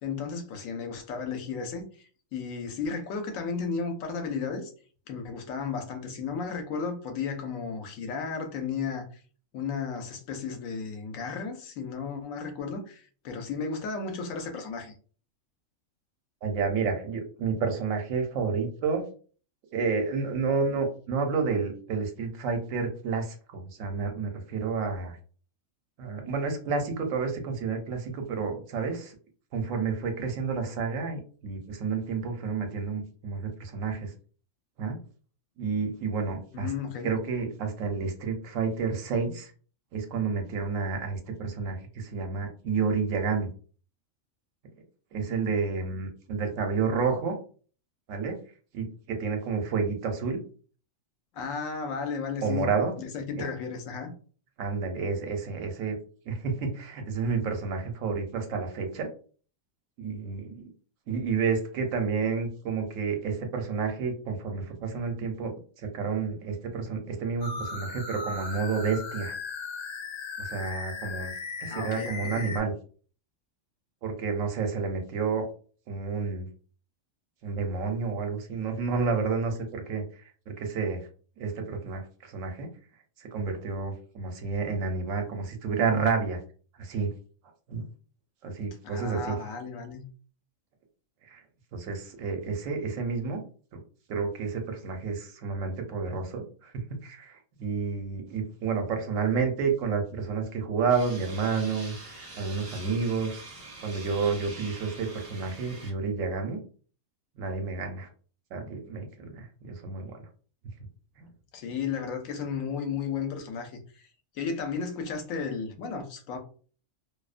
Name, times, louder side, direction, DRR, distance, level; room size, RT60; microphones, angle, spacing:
voice 1, 0.0-1.9 2.3-4.7 5.1-9.0 9.5-14.9 36.5-37.1 51.3-52.7 53.0-54.1 71.7-72.5 88.8-90.0 111.5-114.1 114.3-116.4, left 5 dB, 80° left, 1.0 m, -34 dB
voice 2, 16.4-19.0 19.7-25.2 26.0-29.1 29.5-34.1 34.8-35.0 35.6-36.7 37.0-39.5 39.9-43.5 45.1-47.4 48.1-48.4 48.7-50.4 52.4-52.9 53.4-53.5 54.6-56.0 56.3-59.1 60.0-60.7 61.1-69.4 70.4-71.3 71.6-72.7 74.0-75.5 75.9-76.5 77.4-81.1 81.4-82.7 83.2-86.4 86.8-87.1 87.7-87.9 88.4-89.3 91.2-91.4 91.7-93.4 94.1-103.4 103.8-106.6 107.4-108.1 108.5-110.2 111.2-111.3, right 5 dB, 75° right, 1.0 m, -30 dB
sound 1, 67.4-72.6, left 4 dB, 50° left, 0.5 m, -37 dB
sound 2, 100.9-105.9, right 2 dB, 35° right, 0.6 m, -45 dB
2.6 x 2.1 x 2.4 m
omnidirectional pair, 1.4 m